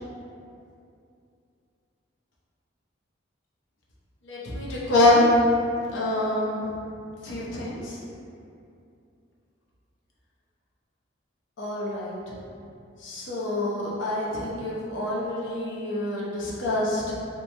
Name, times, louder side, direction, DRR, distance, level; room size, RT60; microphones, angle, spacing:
voice 1, 4.3-5.4 5.9-6.8 7.2-8.0 11.6-12.4 13.0-17.2, left 1 dB, 70° left, -6 dB, 0.6 m, -25 dB
3.0 x 2.1 x 2.6 m, 2.5 s
head